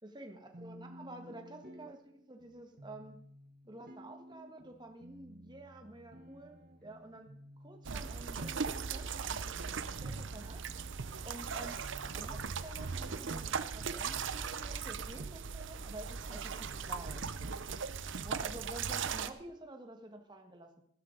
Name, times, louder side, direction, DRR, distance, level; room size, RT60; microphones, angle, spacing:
voice 1, 0.0-3.2 3.7-6.5 6.8-7.3 7.6-9.7 10.0-10.6 11.2-11.8 12.1-17.2 18.2-20.8, right 1 dB, 20° right, 4 dB, 1.5 m, -50 dB
sound 1, 0.5-18.5, equal, 45° right, 1.3 m, -56 dB
sound 2, 7.8-19.3, right 5 dB, 65° right, 0.7 m, -38 dB
15.5 x 12.5 x 3.9 m, 0.67 s
head